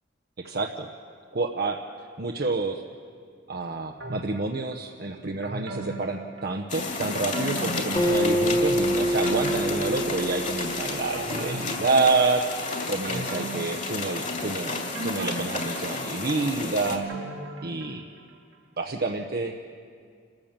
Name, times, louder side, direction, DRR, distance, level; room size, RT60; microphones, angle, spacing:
voice 1, 0.4-0.9 1.3-1.8 2.2-2.8 3.5-12.5 12.8-17.0 17.6-18.0 18.8-19.5, right 3 dB, 55° right, 3 dB, 0.9 m, -28 dB
sound 1, 4.0-4.8 5.4-6.9 7.3-8.7 9.0-10.7 11.1-12.5 13.0-14.5 15.0-18.2 18.5-18.6, right 2 dB, 85° right, 2.0 m, -38 dB
sound 2, 6.7-17.0, left 3 dB, 40° left, 2.5 m, -32 dB
Acoustic guitar, 8.0-11.4, equal, 20° left, 1.8 m, -26 dB
29.0 x 14.0 x 7.4 m, 2.2 s
head